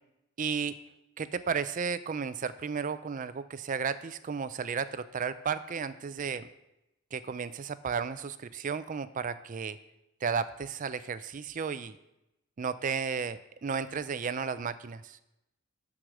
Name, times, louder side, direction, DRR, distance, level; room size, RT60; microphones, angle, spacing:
voice 1, 0.4-0.8 1.2-6.5 7.1-9.8 10.2-12.0 12.6-15.2, right 6 dB, 35° right, 14 dB, 0.4 m, -33 dB
12.0 x 4.9 x 6.2 m, 0.90 s
head